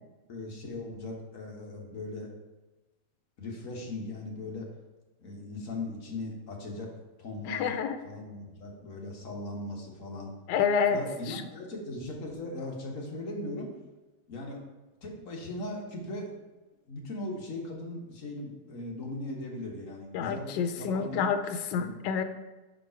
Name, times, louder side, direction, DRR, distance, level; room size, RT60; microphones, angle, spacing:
voice 1, 0.3-2.3 3.4-4.7 5.2-6.9 7.2-7.7 8.0-10.3 10.9-13.7 14.3-14.6 15.0-16.4 16.9-21.3 21.8-21.9, left 2 dB, 50° left, 0 dB, 1.5 m, -38 dB
voice 2, 7.5-8.0 10.5-11.0 11.3-11.4 20.1-22.2, left 6 dB, 90° left, 8 dB, 1.2 m, -28 dB
5.9 x 5.1 x 4.4 m, 1.1 s
omnidirectional pair, 1.9 m